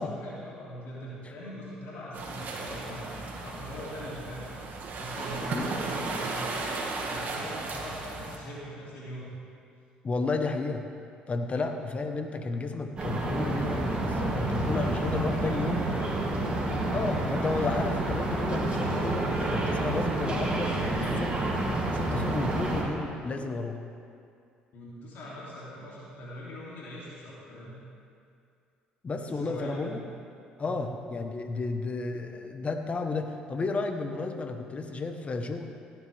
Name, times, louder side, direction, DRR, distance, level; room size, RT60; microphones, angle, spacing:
voice 1, 0.0-4.5 5.0-6.6 7.0-9.3 11.6-11.8 14.5-16.2 16.4-16.8 24.7-27.8 29.2-30.0 30.6-30.9, equal, 65° left, -7 dB, 3.1 m, -42 dB
sound 1, 2.1-8.4, right 3 dB, 55° right, 2.1 m, -35 dB
voice 2, 10.0-10.8 11.3-15.8 16.8-21.5 21.9-23.8 29.0-30.0 30.6-35.7, left 3 dB, 35° left, 6 dB, 1.3 m, -32 dB
sound 2, 13.0-22.8, right 2 dB, 30° right, 2.9 m, -29 dB
17.0 x 9.5 x 3.6 m, 2.4 s
supercardioid pair, 65°, 4 cm